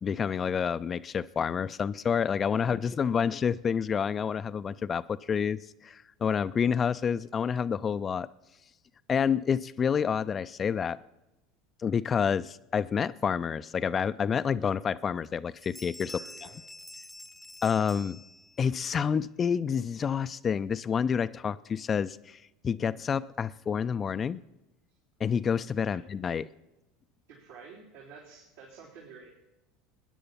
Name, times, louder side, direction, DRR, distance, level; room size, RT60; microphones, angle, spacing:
voice 1, 0.0-8.3 9.1-11.0 11.8-16.1 17.6-18.2 18.6-22.4 22.6-24.4 25.2-26.5, left 7 dB, 30° left, 14 dB, 0.4 m, -28 dB
voice 2, 2.4-3.3 16.1-16.5 25.9-26.0 27.3-29.3, right 5 dB, 75° right, -8 dB, 3.8 m, -50 dB
Bell, 15.2-15.4 15.6-18.8, left 2 dB, 5° left, 0.8 m, -47 dB
20.0 x 10.0 x 5.7 m, 0.96 s
hypercardioid pair, 75°, 0 cm